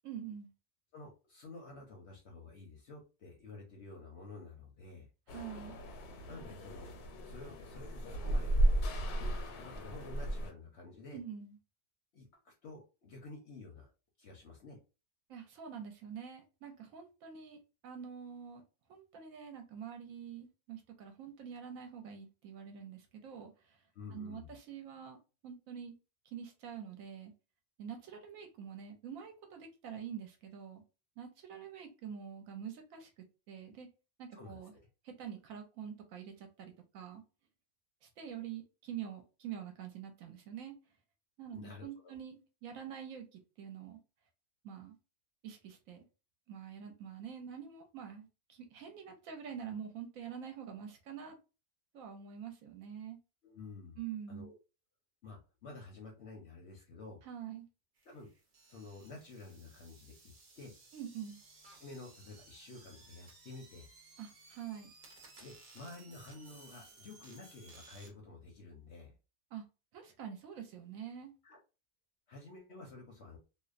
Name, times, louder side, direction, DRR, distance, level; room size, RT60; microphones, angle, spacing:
voice 1, 0.0-0.5 5.3-5.8 11.1-11.6 15.3-18.6 18.9-23.8 24.1-25.2 25.4-25.9 26.2-27.3 27.8-30.8 31.2-33.9 34.2-34.7 35.0-37.2 38.0-40.7 41.4-44.0 44.6-44.9 45.4-46.1 46.5-51.4 51.9-53.2 54.0-54.5 57.2-57.7 60.9-61.4 64.2-64.9 69.5-69.6 69.9-71.3, right 8 dB, 70° right, 4 dB, 0.9 m, -46 dB
voice 2, 0.9-5.1 6.3-6.9 7.2-8.6 9.1-11.2 12.1-13.9 14.2-14.8 23.9-24.6 34.3-34.6 41.5-42.2 53.4-54.0 54.3-54.5 55.2-57.2 58.0-58.3 58.7-60.7 61.8-63.9 65.4-69.1 71.4-71.6 72.3-73.4, left 3 dB, 60° left, 1 dB, 0.7 m, -51 dB
sound 1, 5.3-10.5, right 1 dB, 80° left, 1.1 m, -34 dB
sound 2, 58.0-68.1, right 3 dB, 50° right, 0.5 m, -59 dB
2.6 x 2.1 x 2.4 m, 0.30 s
omnidirectional pair, 1.6 m